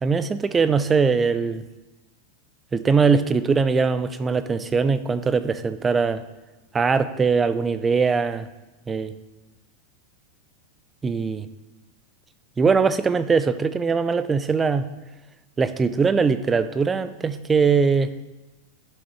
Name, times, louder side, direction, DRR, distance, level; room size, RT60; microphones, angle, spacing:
voice 1, 0.0-1.6 2.7-6.2 6.7-8.5 8.9-9.1 11.0-11.5 12.6-14.9 15.6-18.1, right 5 dB, 15° right, 13 dB, 0.4 m, -21 dB
11.5 x 6.2 x 3.2 m, 1.1 s
figure-of-eight pair, 90°, 0 cm